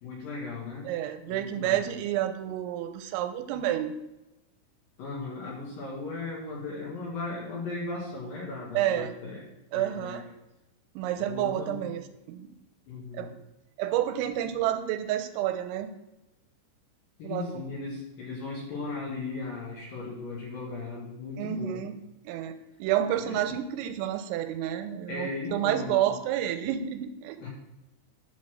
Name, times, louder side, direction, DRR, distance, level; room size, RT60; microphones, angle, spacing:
voice 1, 0.0-0.9 1.3-1.8 5.0-9.5 9.7-10.3 11.3-11.9 12.9-13.3 17.2-21.8 23.2-23.4 25.1-26.2 27.4-27.5, left 3 dB, 60° left, -4 dB, 2.6 m, -37 dB
voice 2, 0.9-4.0 8.7-9.1 9.7-10.3 11.0-12.5 13.1-13.3 13.8-16.0 17.2-17.6 21.4-27.5, right 11 dB, 90° right, 9 dB, 3.3 m, -30 dB
11.0 x 4.1 x 6.3 m, 0.97 s
omnidirectional pair, 5.9 m